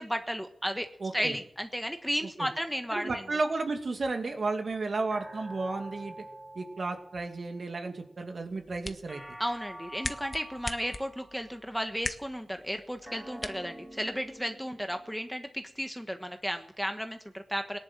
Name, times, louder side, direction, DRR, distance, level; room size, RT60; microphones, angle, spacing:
voice 1, 0.0-0.9 1.1-3.2 9.4-17.8, equal, ahead, 6 dB, 1.3 m, -34 dB
voice 2, 1.0-1.3 2.4-2.5 2.9-6.2 6.5-9.2, right 3 dB, 65° right, 4 dB, 2.4 m, -33 dB
sound 1, 5.1-7.7 9.1-11.6 13.0-15.7, right 1 dB, 15° right, 3.9 m, -47 dB
sound 2, 8.4-14.4, left 1 dB, 25° left, 1.2 m, -42 dB
18.0 x 11.0 x 7.4 m, 0.70 s
cardioid pair, 55°, 0 cm